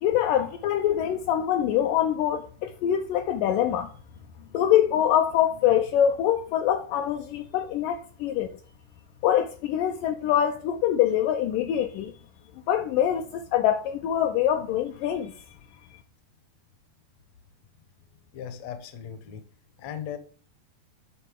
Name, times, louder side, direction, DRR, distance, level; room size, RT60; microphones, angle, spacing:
voice 1, 0.0-3.9 4.5-8.5 9.2-12.1 12.7-15.3, left 10 dB, 85° left, 1.8 m, -24 dB
voice 2, 18.3-19.4 19.8-20.2, left 9 dB, 70° left, 1.7 m, -37 dB
10.5 x 4.0 x 3.6 m
omnidirectional pair, 4.5 m